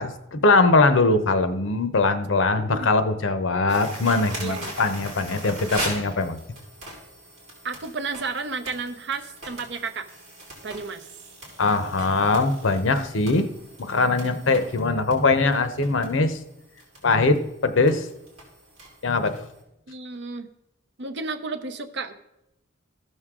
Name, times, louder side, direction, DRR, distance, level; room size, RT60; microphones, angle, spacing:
voice 1, 0.0-6.4 11.6-13.5 13.8-16.4 17.0-18.1 19.0-19.5, left 3 dB, 75° left, 10 dB, 0.8 m, -21 dB
sound 1, 3.7-19.6, right 1 dB, 35° right, 4.0 m, -40 dB
voice 2, 4.4-4.8 7.6-10.1 10.6-11.1 19.9-20.5 21.0-22.2, right 4 dB, 60° right, 9 dB, 0.8 m, -32 dB
15.5 x 6.4 x 3.7 m, 0.86 s
head